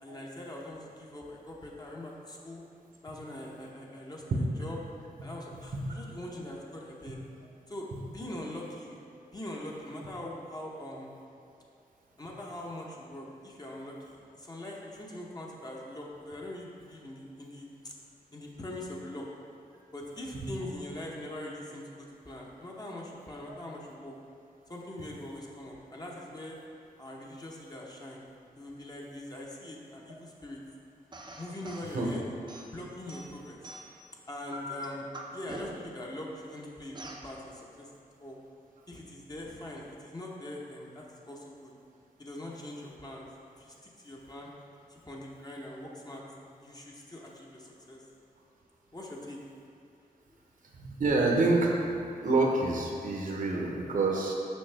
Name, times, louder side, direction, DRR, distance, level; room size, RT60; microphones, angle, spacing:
voice 1, 0.0-2.6 3.0-4.8 5.2-7.2 7.7-9.0 9.3-11.1 12.2-17.9 18.3-19.3 19.9-24.1 24.7-26.6 27.0-28.2 28.6-30.6 31.4-32.2 32.7-33.6 34.3-35.1 35.3-37.9 38.2-38.4 38.9-41.7 42.2-43.3 43.6-44.5 44.9-46.2 46.5-48.0 48.9-49.4, left 1 dB, 25° left, -3 dB, 0.9 m, -42 dB
sound 1, 31.1-31.9 32.5-34.1 34.5-36.0 36.9-37.3, equal, 30° right, 0.7 m, -43 dB
voice 2, 50.7-51.7 52.2-54.3, right 3 dB, 60° right, -1 dB, 1.0 m, -27 dB
6.2 x 5.3 x 3.4 m, 2.5 s
cardioid pair, 80°, 15 cm